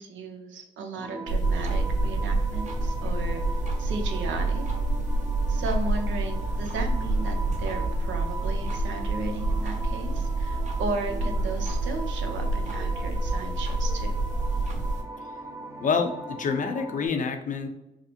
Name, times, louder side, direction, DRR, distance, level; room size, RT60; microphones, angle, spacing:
voice 1, 0.0-3.4 3.8-4.6 5.5-14.1, right 3 dB, 75° right, 4 dB, 0.7 m, -35 dB
sound 1, 1.0-17.1, right 2 dB, 15° right, 0.5 m, -40 dB
sound 2, 1.3-15.0, right 2 dB, 35° right, 0.9 m, -27 dB
voice 2, 15.8-17.7, left 5 dB, 40° left, 5 dB, 0.5 m, -27 dB
4.8 x 2.0 x 2.8 m, 0.93 s
cardioid pair, 90°, 20 cm